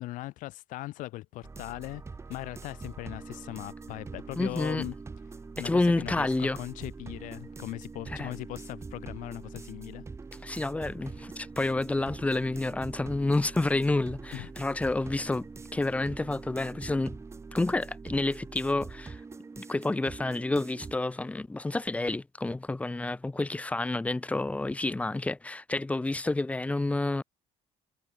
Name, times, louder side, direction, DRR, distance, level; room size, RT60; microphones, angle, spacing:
voice 1, 0.0-2.0 2.3-4.9 5.6-10.0 14.3-14.5, left 17 dB, 85° left, 4.0 m, -39 dB
sound 1, 1.4-21.0, right 4 dB, 20° right, 3.7 m, -44 dB
voice 2, 4.4-4.9 5.6-6.6 8.2-8.3 10.4-17.2 17.5-19.2 19.6-27.2, left 2 dB, 10° left, 0.9 m, -29 dB
cardioid pair, 135°, 13 cm